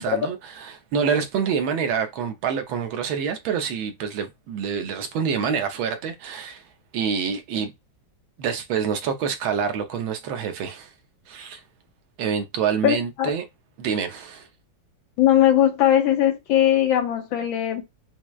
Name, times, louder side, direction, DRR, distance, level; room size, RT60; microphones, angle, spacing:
voice 1, 0.0-6.6 6.9-7.7 8.4-10.9 11.3-11.6 12.2-13.4 13.8-14.5, right 7 dB, 90° right, 1.5 m, -27 dB
voice 2, 12.8-13.3 15.2-17.8, left 11 dB, 80° left, 1.7 m, -19 dB
5.9 x 2.1 x 2.3 m
omnidirectional pair, 2.1 m